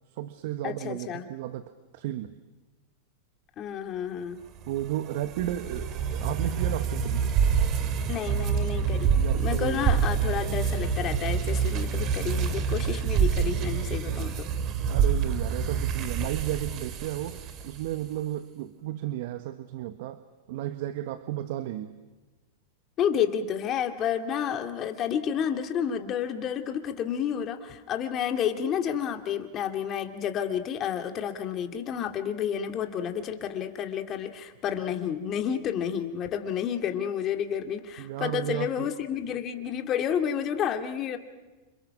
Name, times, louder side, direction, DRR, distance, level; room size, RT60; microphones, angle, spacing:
voice 1, 0.1-2.3 4.7-7.3 9.1-10.0 14.9-20.2 20.5-21.9 38.0-38.9, right 13 dB, 60° right, 11 dB, 1.2 m, -33 dB
voice 2, 0.6-1.3 3.6-4.4 8.1-14.3 23.0-41.2, left 8 dB, 35° left, 5 dB, 2.5 m, -30 dB
sound 1, 4.6-18.0, right 7 dB, 40° right, 2.3 m, -27 dB
29.5 x 27.5 x 6.0 m, 1.2 s
hypercardioid pair, 115°, 0 cm